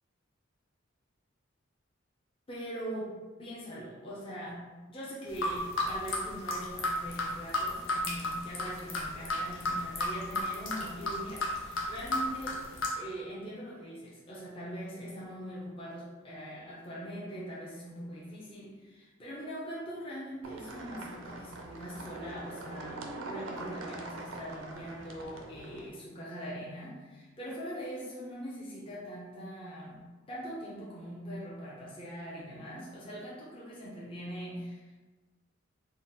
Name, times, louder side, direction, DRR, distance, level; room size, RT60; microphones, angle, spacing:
voice 1, 2.5-4.6 4.9-12.7 13.0-35.0, equal, 25° left, -6 dB, 0.6 m, -42 dB
sound 1, 5.3-12.9, left 1 dB, 75° left, 0.7 m, -33 dB
sound 2, 20.4-25.9, right 2 dB, 75° right, 0.5 m, -43 dB
4.0 x 2.0 x 3.8 m, 1.3 s
head